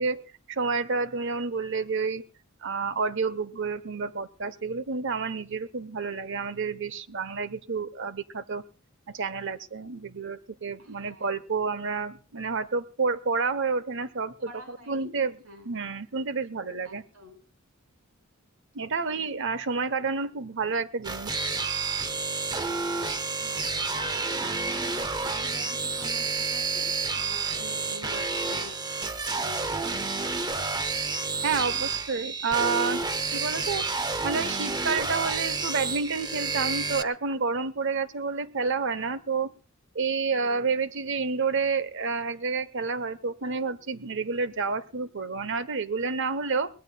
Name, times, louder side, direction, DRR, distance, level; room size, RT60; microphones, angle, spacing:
voice 1, 0.0-2.2 2.6-8.6 9.1-15.3 15.6-17.0 18.7-21.4 31.4-33.0 33.3-33.8 34.2-39.5 39.9-46.7, right 4 dB, 60° right, 15 dB, 1.0 m, -29 dB
voice 2, 10.8-11.4 14.4-15.7 16.8-17.4 19.0-19.3 23.3-23.7 24.0-28.8 29.3-29.8 31.4-32.6 40.2-40.8, right 1 dB, 90° right, 5 dB, 5.9 m, -47 dB
sound 1, 21.0-37.0, right 4 dB, 20° right, 0.9 m, -30 dB
22.5 x 18.0 x 2.3 m, 0.35 s
head